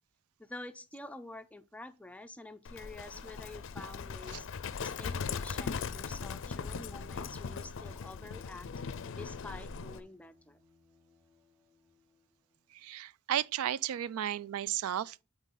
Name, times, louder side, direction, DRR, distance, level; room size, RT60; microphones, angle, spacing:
voice 1, 0.4-4.5 4.8-10.6, left 2 dB, 5° left, 0.4 m, -48 dB
Livestock farm animals working animals, 2.6-10.0, left 5 dB, 65° left, 0.5 m, -39 dB
Bowed string instrument, 4.4-12.9, left 3 dB, 20° right, 3.5 m, -69 dB
voice 2, 12.7-15.2, right 11 dB, 80° right, 0.3 m, -34 dB
9.0 x 3.6 x 3.8 m
head